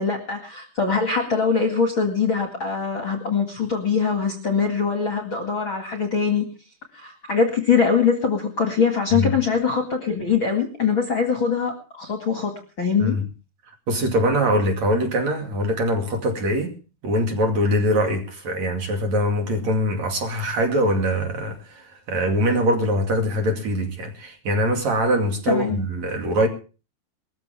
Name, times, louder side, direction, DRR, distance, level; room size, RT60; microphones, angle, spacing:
voice 1, 0.0-6.5 6.9-13.2 25.5-25.8, left 5 dB, 40° left, 2.1 m, -22 dB
voice 2, 13.9-16.8 17.0-26.5, equal, 45° right, 3.2 m, -23 dB
21.0 x 14.5 x 3.6 m
omnidirectional pair, 4.8 m